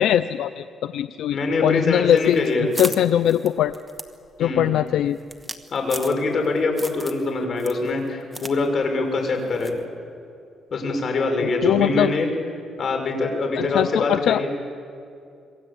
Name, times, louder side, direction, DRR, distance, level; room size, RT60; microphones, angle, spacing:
voice 1, 0.0-1.4 1.6-3.7 4.4-5.2 11.4-12.1 13.6-14.4, left 11 dB, 80° left, 13 dB, 0.5 m, -21 dB
voice 2, 1.3-2.7 4.4-4.7 5.7-9.7 10.7-12.3 12.8-14.5, left 3 dB, 50° left, 4 dB, 6.1 m, -24 dB
sound 1, 2.1-6.5 6.8-7.3 7.6-8.6 8.8-8.9 9.6-9.8, right 1 dB, 5° right, 1.8 m, -36 dB
27.0 x 22.5 x 8.6 m, 2.5 s
cardioid pair, 90°, 0 cm